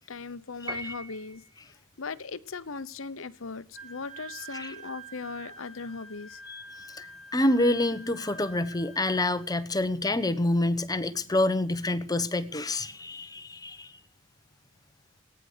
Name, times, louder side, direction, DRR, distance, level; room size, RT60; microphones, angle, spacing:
voice 1, 0.0-1.4 2.0-6.4, left 4 dB, 75° left, 0.9 m, -38 dB
Piano, 0.7-1.6, right 1 dB, 20° right, 1.8 m, -39 dB
Wind instrument woodwind instrument, 3.7-9.5, right 3 dB, ahead, 3.3 m, -47 dB
voice 2, 7.3-13.9, left 1 dB, 20° left, 1.0 m, -27 dB
18.5 x 9.8 x 6.7 m
head